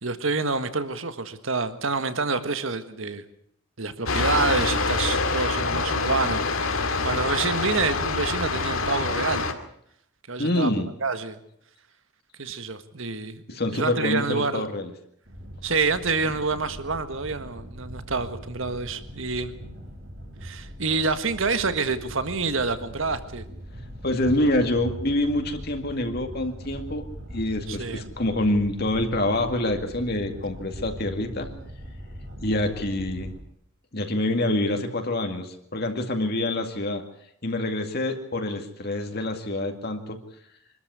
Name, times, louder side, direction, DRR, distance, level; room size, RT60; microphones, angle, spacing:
voice 1, 0.0-3.2 3.8-9.4 10.3-11.4 12.4-14.7 15.6-19.5 20.4-23.4 27.7-28.1, right 4 dB, 70° right, 11 dB, 1.6 m, -28 dB
sound 1, 4.1-9.5, left 3 dB, 75° left, 2.4 m, -25 dB
voice 2, 10.4-10.9 13.5-14.9 24.0-27.0 27.3-31.5 32.4-33.4 33.9-37.0 37.4-40.2, left 1 dB, 50° left, 5 dB, 2.2 m, -26 dB
sound 2, 15.3-33.4, equal, 55° right, 4.3 m, -40 dB
25.0 x 13.0 x 9.5 m, 0.70 s
head